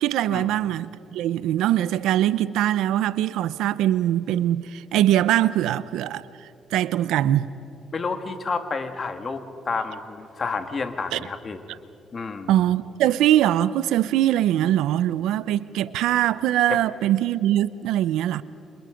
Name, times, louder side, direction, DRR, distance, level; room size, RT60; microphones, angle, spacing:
voice 1, 0.0-6.3 6.7-7.5 11.1-11.2 12.5-18.4, right 12 dB, 90° right, 0.7 m, -22 dB
voice 2, 7.9-9.4 9.7-11.6 12.1-12.5 16.7-16.8, left 4 dB, 40° left, 2.0 m, -30 dB
28.5 x 27.0 x 5.2 m
cardioid pair, 90°, 0 cm